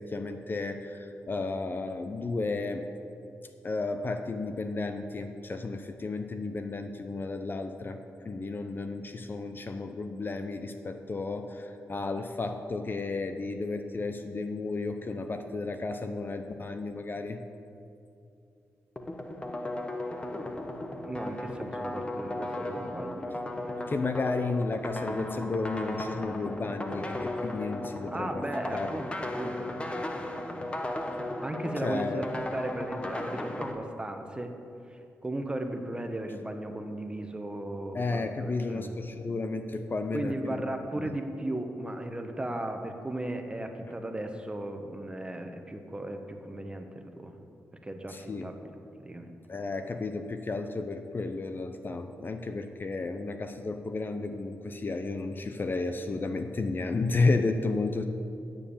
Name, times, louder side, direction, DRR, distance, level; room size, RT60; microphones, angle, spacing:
voice 1, 0.0-2.9 3.6-8.0 8.2-17.4 23.9-28.4 28.7-28.9 31.8-32.3 37.9-40.6 41.0-41.2 48.1-48.5 49.5-58.0, left 3 dB, 40° left, 7 dB, 0.7 m, -32 dB
sound 1, 19.0-33.7, left 1 dB, 20° left, 1.0 m, -36 dB
voice 2, 21.0-23.4 28.1-30.3 30.5-30.7 31.4-34.6 34.9-38.9 40.1-47.3 47.8-48.6 49.0-49.3, right 1 dB, 15° right, 5 dB, 1.1 m, -36 dB
9.9 x 7.2 x 7.1 m, 2.6 s
cardioid pair, 75°, 6 cm